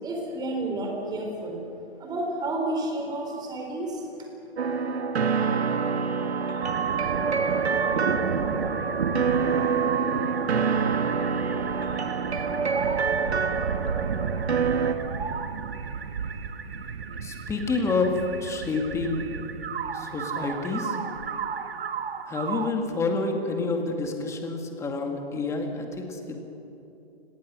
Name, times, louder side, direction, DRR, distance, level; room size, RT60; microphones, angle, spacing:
voice 1, 0.0-1.6 2.0-4.1, right 2 dB, 10° right, 1 dB, 4.6 m, -30 dB
sound 1, 4.6-14.9, right 5 dB, 80° right, 2.1 m, -27 dB
sound 2, 6.6-22.7, right 6 dB, 65° right, 1.8 m, -32 dB
voice 2, 17.2-19.3 19.9-21.0 22.3-26.4, left 3 dB, 10° left, 3 dB, 2.2 m, -28 dB
30.0 x 22.0 x 6.4 m, 2.9 s
hypercardioid pair, 145°, 32 cm